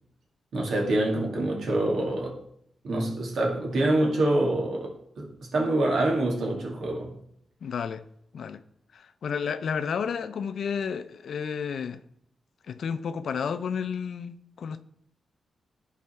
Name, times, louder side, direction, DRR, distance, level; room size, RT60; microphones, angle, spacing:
voice 1, 0.5-2.3 2.8-7.1, right 1 dB, 75° right, 2.1 m, -26 dB
voice 2, 7.6-8.0 8.3-8.6 8.9-12.0 12.7-14.8, left 6 dB, 70° left, 0.5 m, -31 dB
11.0 x 4.2 x 4.4 m
cardioid pair, 80°, 0 cm